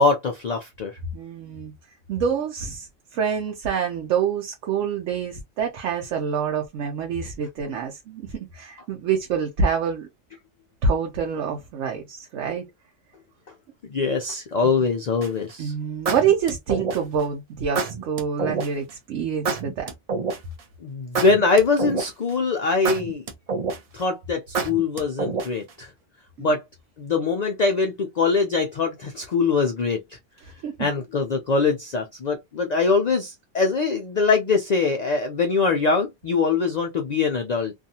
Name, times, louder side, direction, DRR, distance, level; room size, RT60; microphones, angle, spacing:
voice 1, 0.0-1.0 13.8-15.7 20.8-23.3 23.9-25.9 26.4-26.6 27.0-30.2 30.8-37.7, left 4 dB, 75° left, 0.3 m, -23 dB
voice 2, 1.1-1.7 2.1-10.1 10.8-12.7 15.6-19.9 26.4-26.5 30.6-30.9, right 6 dB, 80° right, 1.0 m, -26 dB
sound 1, 15.2-15.5 16.1-17.2 17.7-18.7 19.4-20.6 21.1-22.3 22.8-24.0 24.5-25.7, right 4 dB, 55° right, 0.4 m, -27 dB
2.6 x 2.4 x 2.7 m
omnidirectional pair, 1.3 m